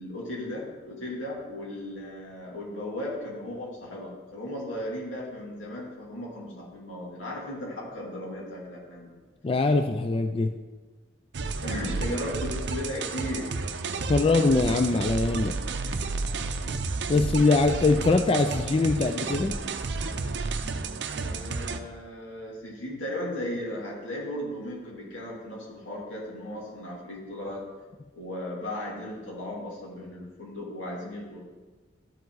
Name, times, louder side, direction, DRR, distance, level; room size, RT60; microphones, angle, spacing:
voice 1, 0.0-9.1 11.6-13.5 21.2-27.6 28.1-31.4, left 1 dB, 85° left, -4 dB, 2.7 m, -36 dB
voice 2, 9.4-10.5 14.1-15.6 17.1-19.6, left 3 dB, 30° left, 6 dB, 0.3 m, -22 dB
sound 1, 11.3-21.8, right 3 dB, 60° right, 0.5 m, -31 dB
12.5 x 5.1 x 3.9 m, 1.3 s
head